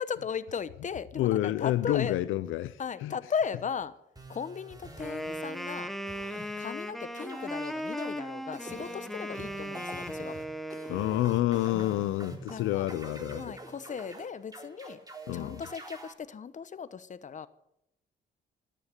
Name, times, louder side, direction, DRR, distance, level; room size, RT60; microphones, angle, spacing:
voice 1, 0.0-2.2 2.8-3.9 4.3-5.9 6.6-10.4 12.5-12.9 13.3-15.0 15.3-17.5, left 6 dB, 40° left, 1.0 m, -36 dB
voice 2, 1.2-3.1 6.3-6.4 10.9-13.5 15.3-15.6, left 14 dB, 90° left, 0.6 m, -29 dB
sound 1, 4.2-5.8 6.1-6.9 7.2-8.1 8.5-16.1, right 1 dB, 20° right, 3.7 m, -46 dB
Wind instrument woodwind instrument, 5.0-11.3, equal, ahead, 1.2 m, -37 dB
13.0 x 10.5 x 9.2 m
cardioid pair, 90°, 20 cm